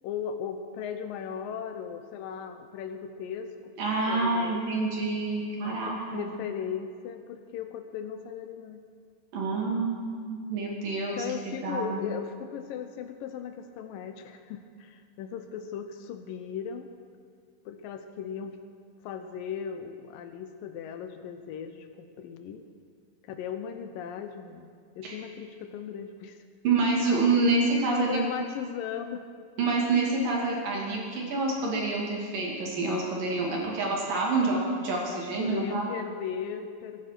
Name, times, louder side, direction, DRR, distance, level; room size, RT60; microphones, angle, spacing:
voice 1, 0.0-3.7 4.1-4.8 5.6-8.8 11.1-16.9 17.7-18.6 19.0-22.7 23.2-26.4 27.9-29.3 35.1-37.0, left 8 dB, 80° left, 8 dB, 2.0 m, -37 dB
voice 2, 3.8-6.3 9.3-11.2 11.5-12.0 25.0-25.1 26.6-28.3 29.6-35.9, right 3 dB, 55° right, -2 dB, 3.9 m, -27 dB
23.0 x 10.5 x 6.1 m, 2.2 s
omnidirectional pair, 5.0 m